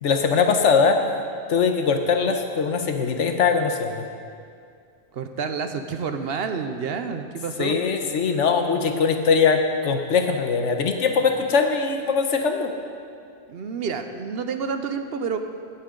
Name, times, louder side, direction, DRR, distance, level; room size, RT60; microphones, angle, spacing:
voice 1, 0.0-1.0 1.5-4.0 7.6-12.7, left 5 dB, 80° left, 5 dB, 1.2 m, -21 dB
voice 2, 5.1-7.8 13.5-15.4, right 5 dB, 60° right, 8 dB, 0.8 m, -29 dB
17.0 x 8.8 x 3.8 m, 2.3 s
omnidirectional pair, 1.2 m